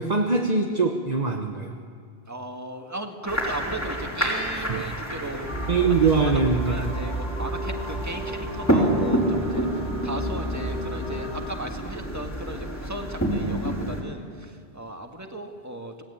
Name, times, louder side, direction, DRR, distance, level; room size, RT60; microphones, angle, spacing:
voice 1, 0.0-1.8 4.7-4.9 5.7-6.8, right 4 dB, 40° right, 3 dB, 1.2 m, -23 dB
voice 2, 2.3-5.5 5.9-16.0, right 1 dB, 15° right, 3 dB, 1.9 m, -36 dB
sound 1, 3.3-14.0, right 1 dB, 15° left, 4.3 m, -29 dB
sound 2, 5.5-12.6, equal, 50° left, 5.8 m, -32 dB
27.5 x 18.5 x 8.7 m, 2.2 s
omnidirectional pair, 1.1 m